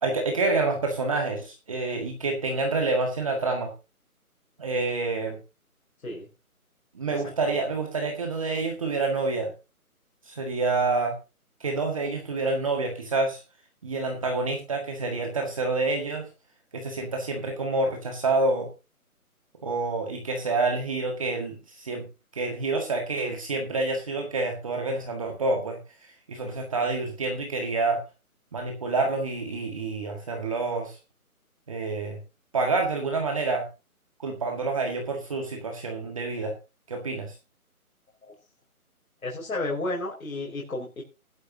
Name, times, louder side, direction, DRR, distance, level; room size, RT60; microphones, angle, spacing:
voice 1, 0.0-3.7 4.6-5.4 7.0-9.5 10.3-11.2 11.6-13.4 13.8-16.3 16.7-18.7 19.6-22.1 22.3-25.8 26.3-28.0 28.5-31.0 31.7-32.2 32.5-33.7 34.2-36.5 36.9-37.3, right 3 dB, 20° right, 3 dB, 1.8 m, -28 dB
voice 2, 39.2-41.0, left 2 dB, 70° left, -3 dB, 5.2 m, -32 dB
17.0 x 12.0 x 2.8 m, 0.30 s
hypercardioid pair, 170°, 45 cm